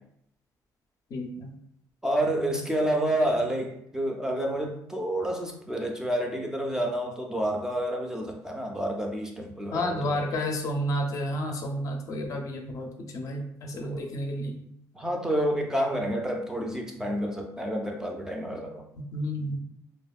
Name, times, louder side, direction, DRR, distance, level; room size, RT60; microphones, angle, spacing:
voice 1, 1.1-1.5 3.2-3.3 9.7-14.6 19.1-19.6, left 1 dB, 55° left, 3 dB, 0.4 m, -31 dB
voice 2, 2.0-10.4 13.7-14.1 14.9-18.8, right 1 dB, 10° right, 2 dB, 0.3 m, -29 dB
2.7 x 2.2 x 2.3 m, 0.73 s
cardioid pair, 125°, 7 cm